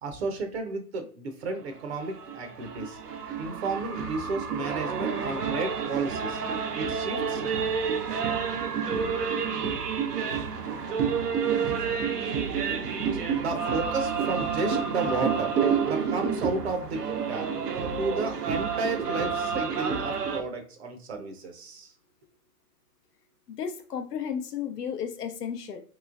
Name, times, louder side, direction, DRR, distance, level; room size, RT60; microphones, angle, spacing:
voice 1, 0.0-3.0 3.4-6.4 6.7-7.5 13.0-15.5 15.8-17.5 18.0-21.9, right 3 dB, 45° right, 5 dB, 0.6 m, -32 dB
sound 1, 1.7-20.4, right 6 dB, 80° right, 0.8 m, -29 dB
voice 2, 23.5-25.8, left 7 dB, 80° left, 7 dB, 0.6 m, -33 dB
3.0 x 3.0 x 2.4 m, 0.43 s
hypercardioid pair, 130°, 47 cm